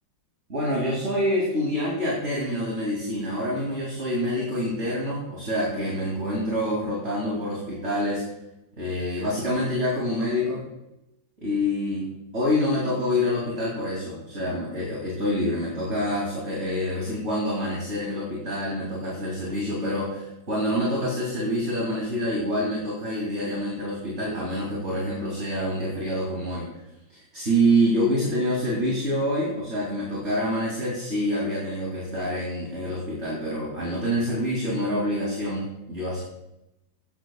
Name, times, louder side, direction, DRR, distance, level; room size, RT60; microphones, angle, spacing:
voice 1, 0.5-8.2 8.8-10.6 11.4-26.7 27.1-36.2, equal, 40° right, -4 dB, 3.2 m, -26 dB
16.0 x 15.0 x 2.4 m, 0.90 s
omnidirectional pair, 1.9 m